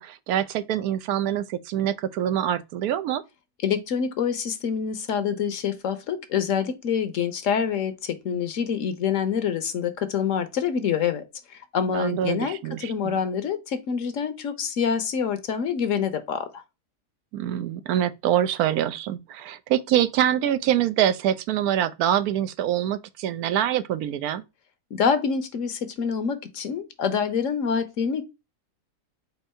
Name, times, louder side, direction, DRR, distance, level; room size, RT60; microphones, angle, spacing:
voice 1, 0.0-3.2 11.9-13.2 17.3-24.4, right 11 dB, 85° right, 1.1 m, -25 dB
voice 2, 3.6-11.2 11.5-16.6 24.9-28.2, left 7 dB, 65° left, 1.1 m, -26 dB
4.5 x 2.6 x 4.2 m
omnidirectional pair, 1.5 m